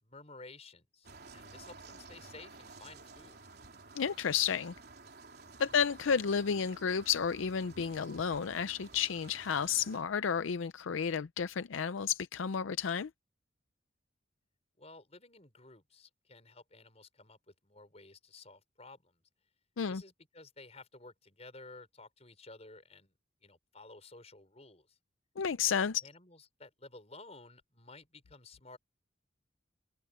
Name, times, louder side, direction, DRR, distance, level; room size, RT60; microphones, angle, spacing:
voice 1, 0.0-3.4 5.6-5.8 14.8-19.2 19.9-23.1 23.4-25.0 26.0-28.8, left 3 dB, 35° left, 5.3 m, -54 dB
sound 1, 1.0-10.0, right 3 dB, 55° right, 3.9 m, -53 dB
voice 2, 4.0-4.7 5.6-13.1 19.8-20.0 25.4-26.0, left 7 dB, 80° left, 0.5 m, -32 dB
head